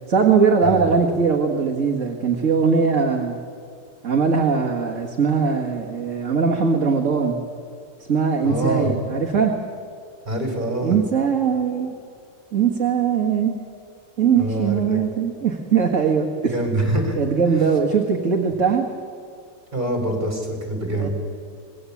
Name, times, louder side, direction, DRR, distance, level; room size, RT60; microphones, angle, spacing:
voice 1, 0.1-3.4 4.0-7.4 8.1-9.5 10.8-11.9 12.5-13.5 14.2-16.5 17.2-18.8 21.0-21.1, right 6 dB, 45° right, 1 dB, 2.0 m, -20 dB
voice 2, 8.4-8.9 10.2-11.0 14.4-15.0 16.5-17.2 19.7-21.1, right 1 dB, 25° right, 3 dB, 4.5 m, -25 dB
26.0 x 19.5 x 8.5 m, 2.3 s
omnidirectional pair, 1.9 m